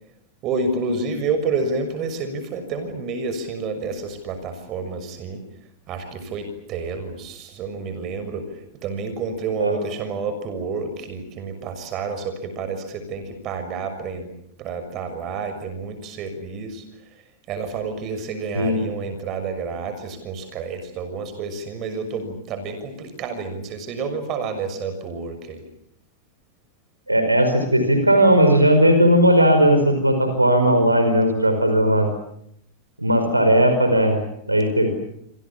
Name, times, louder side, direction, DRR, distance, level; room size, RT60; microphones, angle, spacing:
voice 1, 0.4-5.4 5.9-8.5 8.8-14.3 14.6-16.8 17.5-25.6, right 4 dB, 35° right, 10 dB, 6.5 m, -29 dB
voice 2, 27.1-32.1 33.0-34.2 34.5-34.9, equal, 85° right, 7 dB, 5.1 m, -17 dB
27.5 x 27.0 x 7.3 m, 0.72 s
figure-of-eight pair, 90°, 0 cm